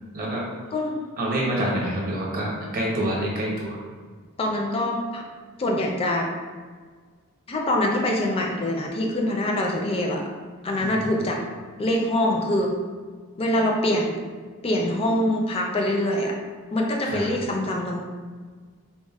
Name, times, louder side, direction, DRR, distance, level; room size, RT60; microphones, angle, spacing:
voice 1, 0.1-0.5 1.2-3.8 10.8-10.9 17.0-17.3, right 1 dB, 40° right, -3 dB, 0.7 m, -27 dB
voice 2, 4.4-5.2 5.6-6.3 7.5-10.2 10.6-11.4 11.8-12.7 13.4-14.2 14.6-16.3 16.7-18.0, left 1 dB, 25° left, 1 dB, 0.4 m, -24 dB
4.0 x 2.0 x 2.3 m, 1.6 s
head